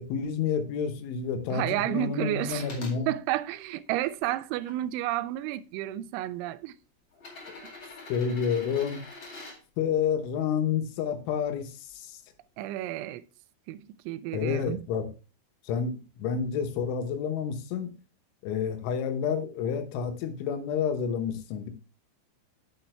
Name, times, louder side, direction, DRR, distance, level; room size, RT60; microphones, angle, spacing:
voice 1, 0.0-3.1 8.1-9.0 9.8-12.2 14.3-15.1 15.7-17.9 18.4-21.7, left 7 dB, 85° left, 3.5 m, -29 dB
voice 2, 1.5-2.6 3.1-6.8 7.6-7.7 12.6-13.2 13.7-14.8, right 14 dB, 85° right, 2.9 m, -31 dB
sound 1, 2.4-3.0 3.7-4.7 5.7-5.8 7.1-9.6 11.4-11.5, left 3 dB, 40° left, 1.8 m, -45 dB
9.0 x 7.0 x 3.3 m
omnidirectional pair, 5.4 m